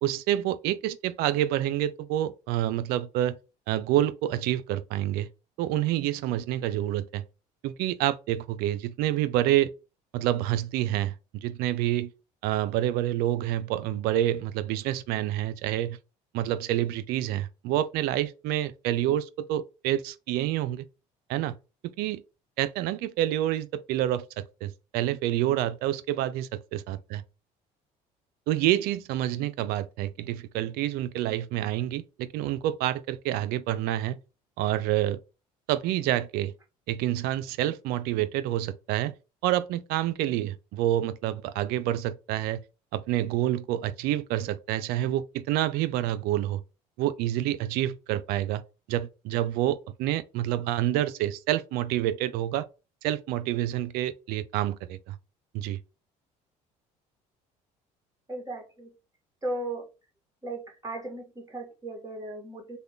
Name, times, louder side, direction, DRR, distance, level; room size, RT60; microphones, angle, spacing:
voice 1, 0.0-3.4 3.7-5.3 5.6-7.2 7.6-9.7 10.1-12.1 12.4-16.0 16.3-20.8 21.3-21.6 22.0-22.2 22.6-27.2 28.5-34.2 34.6-35.2 35.7-36.5 36.9-39.1 39.4-42.6 42.9-46.6 47.0-48.6 48.9-52.7 53.0-55.2 55.5-55.8, right 13 dB, 75° right, 0.4 m, -28 dB
voice 2, 58.3-58.9 59.4-59.9 60.4-62.8, right 2 dB, 20° right, 1.5 m, -36 dB
3.3 x 2.2 x 3.6 m
supercardioid pair, 85°, 16 cm